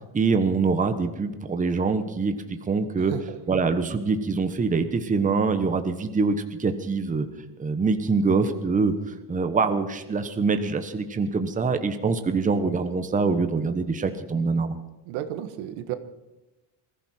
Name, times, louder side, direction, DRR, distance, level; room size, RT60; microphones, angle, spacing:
voice 1, 0.1-2.3 2.7-3.1 3.5-7.3 7.6-14.8, right 4 dB, 15° right, 8 dB, 1.1 m, -24 dB
voice 2, 3.0-3.4 15.0-16.0, right 11 dB, 80° right, 9 dB, 1.6 m, -33 dB
21.0 x 15.0 x 4.5 m, 1.0 s
cardioid pair, 135°, 47 cm